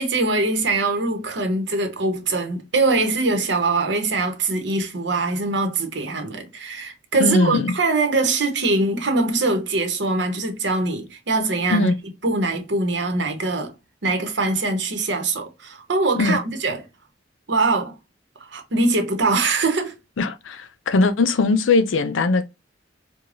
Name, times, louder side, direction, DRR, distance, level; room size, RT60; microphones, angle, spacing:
voice 1, 0.0-11.9 12.2-13.7 14.0-16.8 17.5-17.9 18.5-19.9, right 3 dB, 65° right, 0.9 m, -22 dB
voice 2, 7.2-7.7 11.7-11.9 16.1-16.4 20.2-22.5, left 3 dB, 80° left, 0.5 m, -20 dB
4.8 x 2.2 x 2.5 m
head